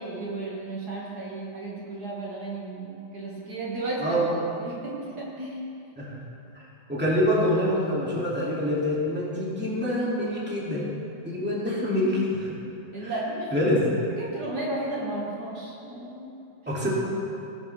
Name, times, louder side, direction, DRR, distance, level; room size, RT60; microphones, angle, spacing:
voice 1, 0.0-4.2 4.6-5.6 12.9-13.5 14.2-16.3, right 2 dB, 60° right, -5 dB, 2.3 m, -34 dB
voice 2, 6.9-10.9 11.2-12.6 13.0-13.1 13.5-13.8 16.7-16.9, left 1 dB, 5° right, -6 dB, 2.3 m, -26 dB
17.5 x 10.5 x 3.4 m, 2.7 s
omnidirectional pair, 1.9 m